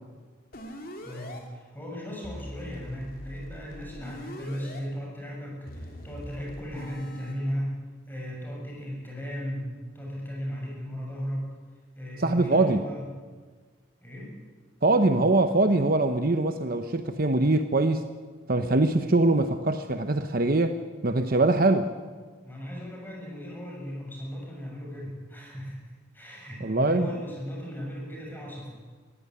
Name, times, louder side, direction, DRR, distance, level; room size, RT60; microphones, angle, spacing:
sound 1, 0.5-1.4 2.2-4.8 5.7-7.3, equal, 45° left, 3.0 m, -42 dB
voice 1, 1.0-7.8 8.1-9.7 9.9-11.5 12.0-13.0 14.0-14.3 22.4-28.7, equal, 10° left, -2 dB, 7.0 m, -36 dB
voice 2, 12.2-12.8 14.8-18.0 18.5-20.8 21.0-21.9 26.6-27.1, right 2 dB, 45° right, 8 dB, 0.9 m, -23 dB
22.0 x 15.5 x 10.0 m, 1.5 s
head